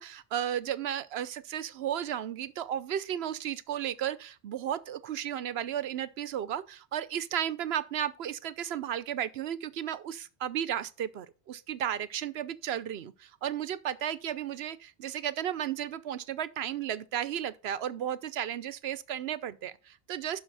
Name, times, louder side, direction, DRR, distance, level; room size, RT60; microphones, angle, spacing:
voice 1, 0.0-20.4, right 10 dB, 85° right, 0.9 m, -34 dB
11.5 x 5.5 x 4.1 m
omnidirectional pair, 1.0 m